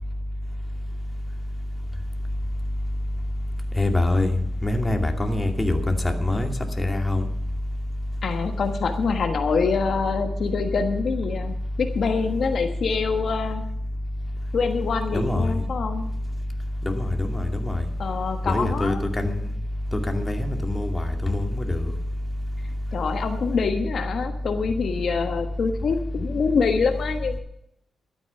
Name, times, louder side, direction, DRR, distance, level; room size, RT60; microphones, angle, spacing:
voice 1, 3.8-4.3 4.6-7.2 15.1-15.5 16.8-17.8 18.4-19.3 20.1-21.8, left 1 dB, 15° left, 2.4 m, -24 dB
voice 2, 8.2-13.6 14.5-16.1 18.0-19.0 22.9-27.4, left 5 dB, 60° left, 1.3 m, -25 dB
13.0 x 9.1 x 7.0 m
cardioid pair, 80°, 0 cm